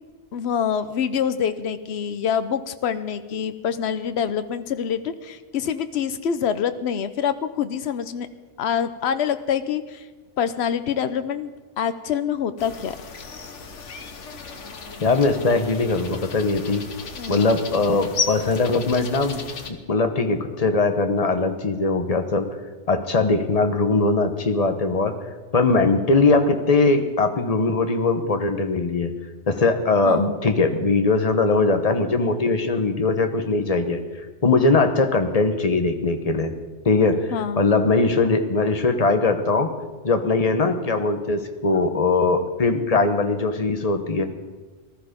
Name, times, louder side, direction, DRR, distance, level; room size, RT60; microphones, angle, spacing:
voice 1, 0.3-8.3 8.6-10.1 10.4-12.9 17.2-17.5 30.0-30.3 37.3-37.6, left 8 dB, 65° left, 11 dB, 1.0 m, -26 dB
sound 1, 12.6-19.7, left 5 dB, 85° left, 1.5 m, -34 dB
voice 2, 15.0-16.9 17.3-19.4 19.9-22.5 22.9-25.1 25.5-29.1 29.5-34.0 34.4-36.5 36.8-37.3 37.6-39.7 40.0-44.2, left 3 dB, 35° left, 7 dB, 1.2 m, -20 dB
19.0 x 13.0 x 5.2 m, 1.3 s
omnidirectional pair, 1.2 m